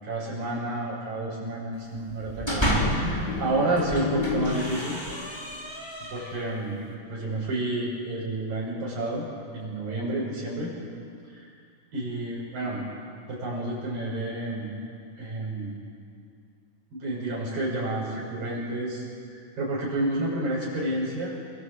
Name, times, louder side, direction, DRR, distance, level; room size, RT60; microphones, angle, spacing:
voice 1, 0.0-5.0 6.1-6.8 7.1-9.3 9.5-10.7 11.3-11.5 11.9-12.8 13.3-14.7 15.2-15.7 16.9-21.3, right 2 dB, 85° right, -5 dB, 8.5 m, -30 dB
sound 1, 2.1-3.2 3.7-6.5, equal, 5° left, 3.8 m, -30 dB
sound 2, 3.1-5.1, left 6 dB, 55° left, 3.5 m, -32 dB
27.5 x 24.0 x 8.3 m, 2.3 s
omnidirectional pair, 3.9 m